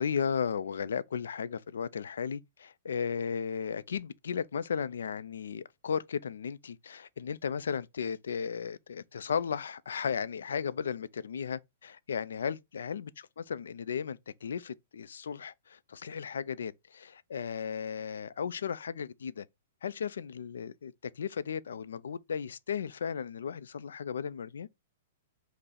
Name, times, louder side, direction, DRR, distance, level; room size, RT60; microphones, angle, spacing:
voice 1, 0.0-19.5 19.8-24.7, left 7 dB, 85° left, 0.3 m, -35 dB
5.3 x 2.0 x 4.1 m
hypercardioid pair, 135°, 0 cm